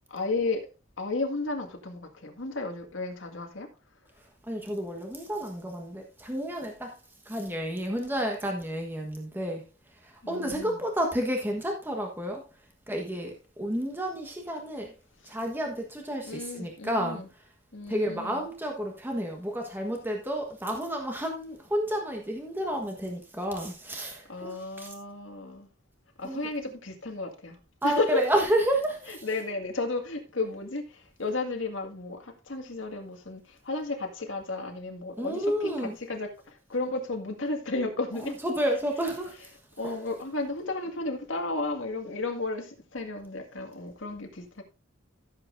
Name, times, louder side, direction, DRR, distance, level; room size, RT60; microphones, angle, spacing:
voice 1, 0.1-0.7 1.0-3.7 10.2-10.8 16.2-17.3 17.7-18.4 24.3-25.7 26.2-28.2 29.2-38.4 39.8-44.6, left 3 dB, 75° left, 2.0 m, -33 dB
voice 2, 4.2-12.4 12.9-14.9 15.2-17.2 17.9-24.9 26.2-26.4 27.8-29.3 35.2-36.0 38.2-39.5 39.8-40.2, equal, 10° right, 1.3 m, -31 dB
14.5 x 7.7 x 2.6 m
head